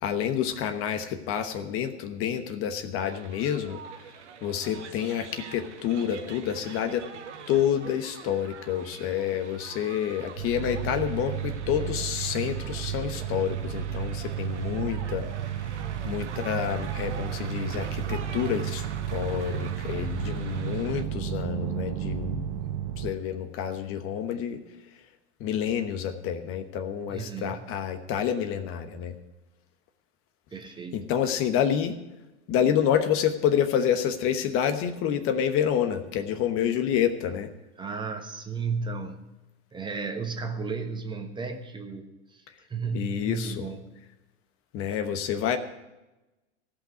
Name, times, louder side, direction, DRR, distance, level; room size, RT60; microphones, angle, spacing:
voice 1, 0.0-3.8 4.4-7.1 7.5-15.3 15.6-15.7 16.0-18.8 19.1-22.5 23.0-24.6 25.4-29.2 30.9-31.9 32.5-37.5 42.9-43.6 44.7-45.6, left 9 dB, 40° left, 9 dB, 1.1 m, -28 dB
sound 1, 3.0-21.0, right 7 dB, 85° right, 1.3 m, -44 dB
sound 2, 10.4-23.1, right 10 dB, 55° right, 1.0 m, -33 dB
voice 2, 27.1-27.7 30.5-31.0 37.8-39.2 39.7-42.4 42.7-43.9, right 4 dB, 15° right, 5 dB, 1.2 m, -34 dB
15.0 x 5.7 x 9.3 m, 1.0 s
hypercardioid pair, 110°, 35 cm